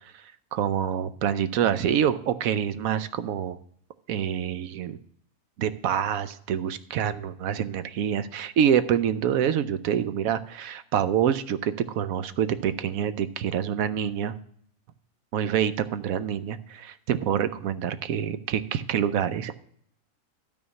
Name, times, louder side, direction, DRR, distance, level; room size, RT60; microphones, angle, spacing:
voice 1, 0.5-3.6 4.1-5.0 5.6-14.4 15.3-19.5, right 9 dB, 80° right, 13 dB, 1.1 m, -26 dB
12.5 x 4.3 x 6.7 m, 0.65 s
omnidirectional pair, 1.4 m